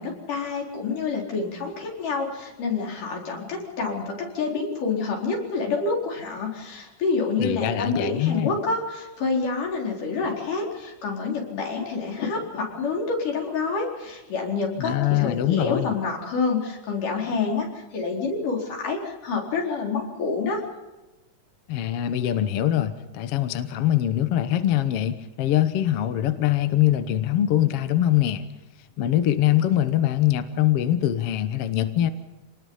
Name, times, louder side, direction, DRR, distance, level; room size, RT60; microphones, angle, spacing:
voice 1, 0.0-20.6, left 4 dB, 75° left, -1 dB, 5.8 m, -28 dB
voice 2, 7.4-8.5 14.8-15.9 21.7-28.4 29.0-32.1, left 12 dB, 60° left, 10 dB, 1.7 m, -23 dB
27.5 x 19.5 x 5.6 m, 1.1 s
omnidirectional pair, 3.7 m